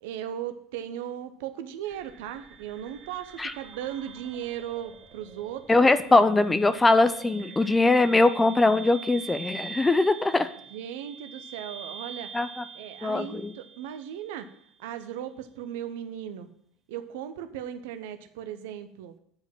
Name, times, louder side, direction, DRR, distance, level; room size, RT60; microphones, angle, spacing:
voice 1, 0.0-5.9 10.7-12.3 12.7-14.5 14.8-16.5 16.9-19.1, right 10 dB, 65° right, 9 dB, 0.8 m, -37 dB
sound 1, 1.8-14.8, right 6 dB, 45° right, 1.8 m, -45 dB
voice 2, 5.7-10.5 12.3-12.6 13.0-13.5, left 2 dB, 15° left, 12 dB, 0.6 m, -21 dB
9.4 x 5.2 x 7.4 m, 0.67 s
figure-of-eight pair, 70°, 0 cm